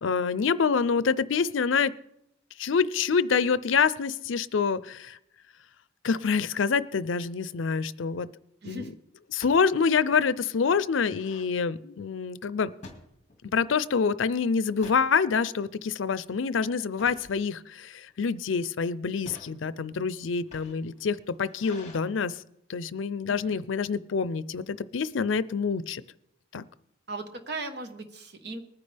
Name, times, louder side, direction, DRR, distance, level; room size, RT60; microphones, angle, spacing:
voice 1, 0.0-1.9 2.6-5.2 6.0-8.3 8.7-8.8 9.3-12.7 13.5-22.4 22.7-26.0 26.5-26.6, left 5 dB, 85° left, 16 dB, 0.5 m, -26 dB
sound 1, 7.6-7.9 9.3-9.6 10.1-10.2 10.5-11.5 12.8-13.6 14.0-14.2 14.6-15.1 15.7-16.0 16.9-17.3 18.1-18.5 19.1-19.5 20.3-22.0, left 2 dB, 35° left, 2.0 m, -48 dB
voice 2, 8.6-8.9 23.3-23.6 27.1-28.6, right 2 dB, 60° right, 7 dB, 1.3 m, -38 dB
20.0 x 9.7 x 3.4 m, 0.78 s
head